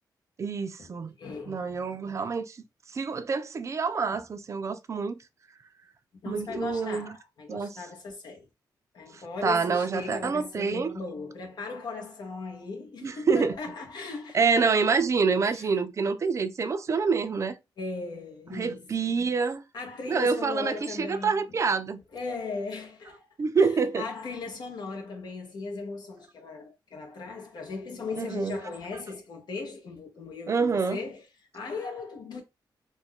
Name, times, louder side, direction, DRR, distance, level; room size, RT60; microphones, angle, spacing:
voice 1, 0.4-1.1 1.5-2.6 2.9-5.2 6.3-7.1 7.5-7.7 9.1-11.0 13.0-13.5 14.3-17.6 18.5-19.6 20.1-22.0 23.4-24.0 28.2-28.6 30.5-31.0, right 5 dB, 40° right, 0.4 m, -27 dB
voice 2, 1.2-1.9 4.1-4.2 6.2-8.5 8.9-14.8 15.4-15.7 17.8-19.2 19.7-21.4 22.1-23.3 23.6-31.2 31.5-32.4, left 4 dB, 65° left, 0.7 m, -38 dB
2.3 x 2.2 x 3.5 m
cardioid pair, 95°, 8 cm